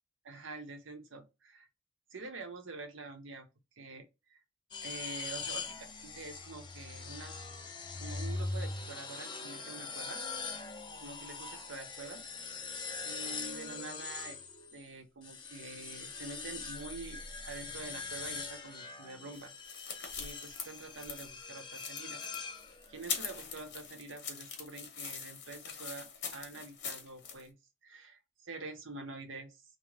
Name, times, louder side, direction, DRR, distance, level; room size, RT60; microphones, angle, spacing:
voice 1, 0.2-1.7 2.1-3.5 3.8-4.0 4.3-4.4 4.8-7.4 8.0-10.2 10.5-10.7 11.0-12.2 12.7-12.8 13.0-14.4 14.7-22.2 22.9-27.6 27.8-29.6, right 3 dB, 80° right, 0.8 m, -47 dB
sound 1, 4.7-14.8 15.2-23.1, left 4 dB, 25° left, 0.4 m, -42 dB
sound 2, 19.3-27.4, left 6 dB, 60° left, 0.9 m, -43 dB
3.1 x 2.0 x 3.6 m
head